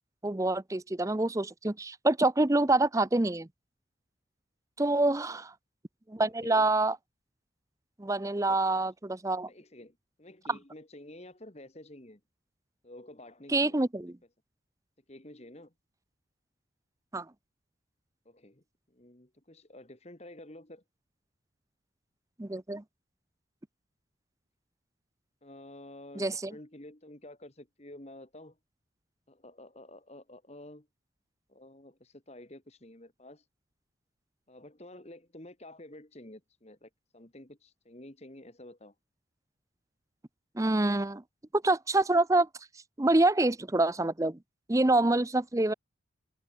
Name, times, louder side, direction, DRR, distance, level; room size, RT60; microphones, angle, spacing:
voice 1, 0.2-3.5 4.8-5.5 6.1-7.0 8.0-9.5 10.5-10.6 13.5-14.2 17.1-17.3 22.4-22.8 26.2-26.5 40.6-41.2 41.5-42.5 43.0-44.4 44.7-45.7, right 2 dB, 15° right, 0.6 m, -26 dB
voice 2, 8.3-8.8 9.5-12.2 12.8-13.8 15.1-15.7 18.3-18.6 18.9-20.8 25.4-28.6 29.3-30.9 31.5-33.5 34.5-38.9, left 1 dB, 35° left, 1.9 m, -50 dB
head